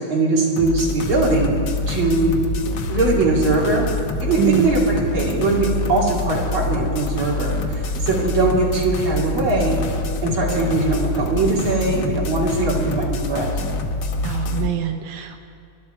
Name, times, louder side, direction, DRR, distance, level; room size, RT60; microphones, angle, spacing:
voice 1, 0.0-1.5 1.9-2.3 2.9-3.8 4.2-9.8 10.2-13.5, right 2 dB, 45° right, -4 dB, 3.5 m, -21 dB
sound 1, 0.6-14.7, left 2 dB, 90° left, 1.0 m, -25 dB
voice 2, 4.4-4.7 14.2-15.4, right 13 dB, 80° right, 6 dB, 2.1 m, -24 dB
27.5 x 11.5 x 4.5 m, 2.4 s
omnidirectional pair, 3.4 m